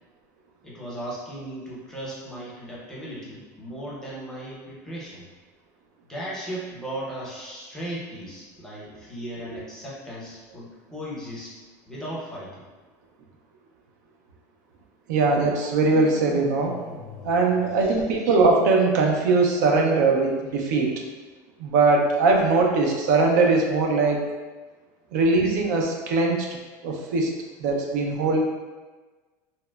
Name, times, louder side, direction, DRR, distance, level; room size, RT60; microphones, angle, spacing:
voice 1, 0.6-5.2 6.1-11.5 11.9-12.7 17.8-18.0, right 1 dB, 5° left, -7 dB, 0.6 m, -36 dB
voice 2, 15.1-16.8 17.2-20.9 21.6-24.3 25.1-26.5 26.8-28.4, right 3 dB, 90° right, 1 dB, 0.5 m, -21 dB
sound 1, 15.2-18.4, left 4 dB, 80° left, 0.4 m, -41 dB
2.8 x 2.0 x 2.2 m, 1.3 s
supercardioid pair, 145°, 9 cm